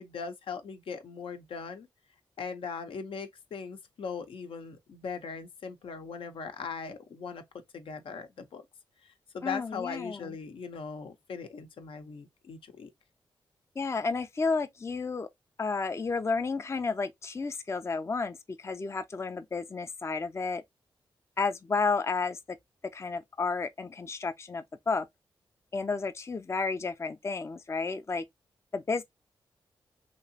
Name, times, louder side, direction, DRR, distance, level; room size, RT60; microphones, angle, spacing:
voice 1, 0.0-1.9 2.4-7.4 7.7-8.6 9.0-12.9, left 5 dB, 75° left, 0.7 m, -39 dB
voice 2, 9.4-10.3 13.8-15.3 15.6-20.6 21.4-22.4 22.9-25.1 25.7-28.2 28.7-29.0, left 4 dB, 30° left, 0.5 m, -31 dB
3.0 x 2.8 x 2.7 m
cardioid pair, 55°, 9 cm